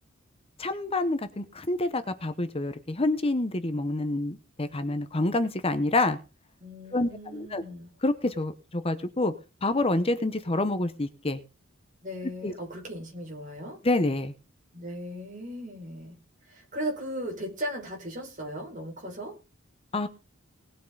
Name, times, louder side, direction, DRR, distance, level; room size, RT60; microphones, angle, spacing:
voice 1, 0.6-6.2 6.9-7.6 8.0-9.3 9.6-11.4 12.4-12.5 13.8-14.3 19.9-20.1, left 2 dB, 30° left, 10 dB, 0.9 m, -27 dB
voice 2, 6.6-7.9 12.0-13.8 14.7-16.2 16.5-19.4, equal, 40° right, 1 dB, 5.7 m, -37 dB
19.0 x 9.2 x 3.9 m, 0.32 s
head